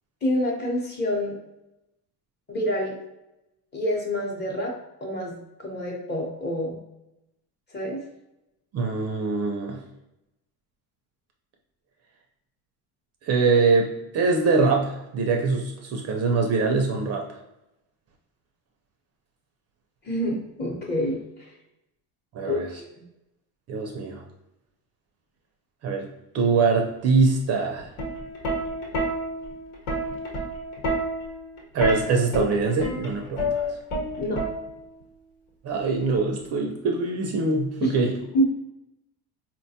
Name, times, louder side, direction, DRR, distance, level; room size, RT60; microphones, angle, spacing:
voice 1, 0.2-1.4 2.5-2.9 3.7-4.7 5.0-6.7 7.7-8.0 20.0-21.5 22.4-22.9 34.2-34.4 37.8-37.9 38.3-38.4, equal, 25° left, -1 dB, 0.8 m, -27 dB
voice 2, 8.7-9.8 13.2-17.2 22.3-22.7 23.7-24.2 25.8-26.1 26.3-27.9 31.7-33.7 35.6-38.2, right 4 dB, 40° right, 2 dB, 0.4 m, -23 dB
Plucked string instrument, 27.8-35.0 36.1-36.4, equal, 80° left, 1.1 m, -29 dB
4.0 x 2.2 x 2.7 m, 0.90 s
cardioid pair, 135°, 39 cm